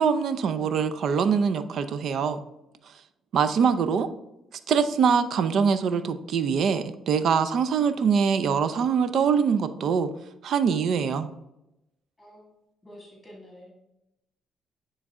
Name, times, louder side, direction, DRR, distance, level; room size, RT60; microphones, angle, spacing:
voice 1, 0.0-2.4 3.3-4.1 4.7-10.1 10.4-11.3, right 6 dB, 65° right, 12 dB, 0.5 m, -23 dB
voice 2, 3.4-4.0 12.2-12.5 12.8-13.8, equal, 15° left, -2 dB, 1.9 m, -49 dB
9.5 x 3.3 x 3.6 m, 0.90 s
cardioid pair, 90°, 0 cm